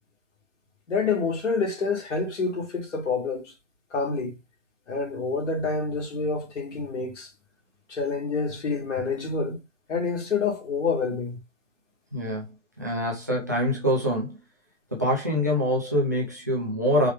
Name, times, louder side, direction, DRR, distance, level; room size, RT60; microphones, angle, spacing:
voice 1, 0.9-3.5 3.9-4.4 4.9-7.3 7.9-9.6 9.9-11.4, left 4 dB, 65° left, 1.8 m, -27 dB
voice 2, 12.1-12.5 12.8-14.4 14.9-17.1, equal, 15° right, 0.5 m, -25 dB
4.7 x 2.1 x 3.3 m
hypercardioid pair, 165°, 38 cm